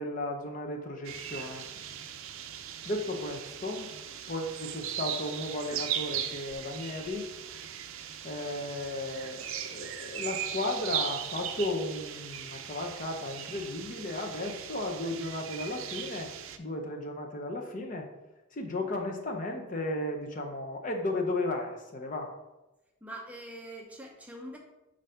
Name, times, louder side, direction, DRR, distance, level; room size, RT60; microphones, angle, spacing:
voice 1, 0.0-1.6 2.9-3.9 4.3-7.3 8.2-16.3 16.6-18.1 18.5-22.3, left 2 dB, 35° left, 3 dB, 0.6 m, -34 dB
sound 1, 1.0-16.6, right 9 dB, 65° right, 0.5 m, -38 dB
voice 2, 23.0-24.6, right 1 dB, 5° right, 1 dB, 0.6 m, -43 dB
6.7 x 2.6 x 5.6 m, 1.0 s
head